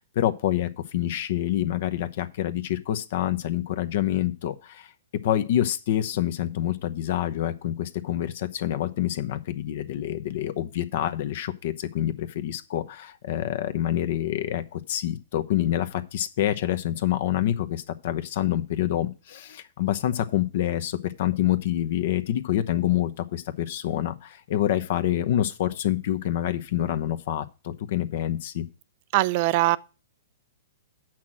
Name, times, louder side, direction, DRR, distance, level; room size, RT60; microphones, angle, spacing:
voice 1, 0.0-4.9 5.2-28.7, left 12 dB, 60° left, 0.9 m, -27 dB
voice 2, 29.1-29.8, right 18 dB, 45° right, 0.5 m, -21 dB
7.6 x 6.0 x 6.1 m
hypercardioid pair, 140°, 0 cm